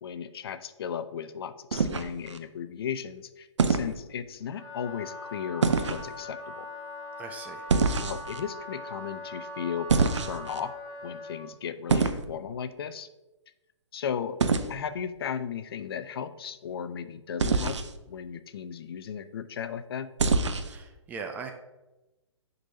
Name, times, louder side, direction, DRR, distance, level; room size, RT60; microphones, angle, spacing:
voice 1, 0.0-6.7 8.0-10.7 11.0-13.1 13.9-14.4 14.7-17.8 18.1-20.1, left 8 dB, 55° left, 12 dB, 0.5 m, -36 dB
sound 1, 1.7-2.4 3.6-3.9 5.6-6.0 7.7-8.4 9.9-10.6 11.9-12.3 14.4-14.7 17.4-17.9 20.2-20.8, right 4 dB, 75° right, 0.6 m, -25 dB
Wind instrument woodwind instrument, 4.5-11.5, left 2 dB, 20° left, 1.6 m, -41 dB
voice 2, 7.2-7.7 20.6-21.5, right 5 dB, 10° right, 4 dB, 0.3 m, -40 dB
10.0 x 4.0 x 2.7 m, 1.0 s
figure-of-eight pair, 130°, 15 cm